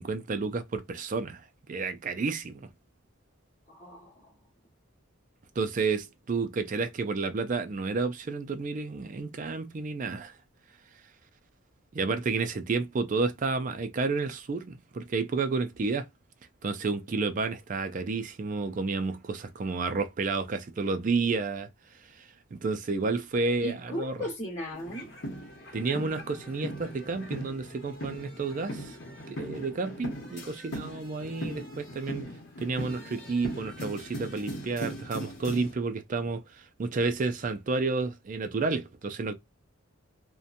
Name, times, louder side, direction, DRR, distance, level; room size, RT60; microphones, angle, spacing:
voice 1, 0.0-2.7 5.6-10.3 11.9-16.1 16.6-21.7 22.1-24.3 25.7-29.0 29.3-32.3 32.6-39.3, right 4 dB, 35° right, 0.3 m, -31 dB
voice 2, 3.7-4.3 23.6-25.1, equal, 30° left, 1.2 m, -36 dB
sound 1, 24.7-35.7, equal, 50° left, 0.9 m, -40 dB
2.7 x 2.2 x 2.5 m
head